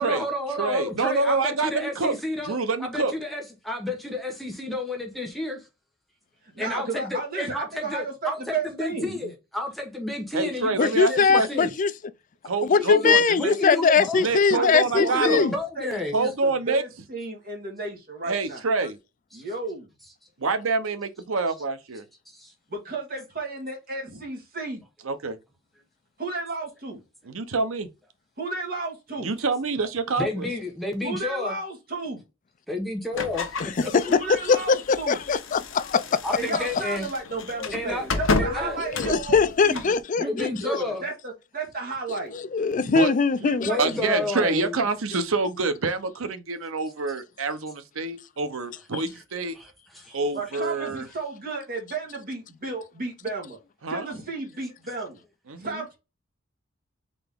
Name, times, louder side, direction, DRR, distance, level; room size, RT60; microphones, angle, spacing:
voice 1, 0.0-5.6 6.6-11.7 12.7-16.1 19.3-19.5 22.3-22.5 30.2-31.5 32.7-33.7 34.0-34.2 36.2-37.1 37.7-38.8 40.2-41.0 43.6-44.8 49.5-50.2, left 2 dB, ahead, 1.0 m, -31 dB
voice 2, 0.6-2.1 2.4-3.1 10.3-11.7 12.4-13.6 14.2-15.5 16.1-16.8 18.3-19.0 20.4-22.0 25.0-25.4 27.3-27.9 29.2-30.5 42.7-43.1 43.8-49.5 50.1-51.0 53.8-54.1 55.5-55.8, right 3 dB, 85° right, 0.8 m, -26 dB
voice 3, 6.5-9.3 14.5-18.6 19.3-19.9 22.7-24.8 26.2-27.0 28.4-29.3 31.0-32.2 34.1-35.2 36.3-42.3 43.4-43.8 44.1-44.3 50.3-53.6 53.9-55.2 55.6-56.0, right 3 dB, 45° right, 2.0 m, -33 dB
voice 4, 10.8-11.9 12.6-15.5 33.6-34.2 34.5-36.2 38.8-40.8 42.1-43.7 48.9-49.0, left 5 dB, 40° left, 0.4 m, -22 dB
sound 1, 33.1-40.0, left 3 dB, 70° left, 0.9 m, -32 dB
4.0 x 3.4 x 3.5 m
head